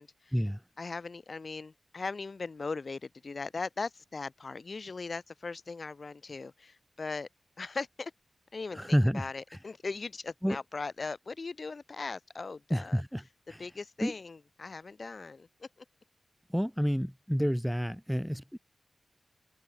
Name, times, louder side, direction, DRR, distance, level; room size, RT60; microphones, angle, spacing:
voice 1, 0.0-0.4 0.8-7.3 7.6-8.1 8.5-13.0 13.5-15.9, left 4 dB, 50° left, 7.0 m, -39 dB
voice 2, 8.7-9.3 10.4-10.6 12.7-13.2 13.5-13.6 14.0-14.1 16.5-18.6, equal, ahead, 1.7 m, -29 dB
wide cardioid pair, 70°, 0 cm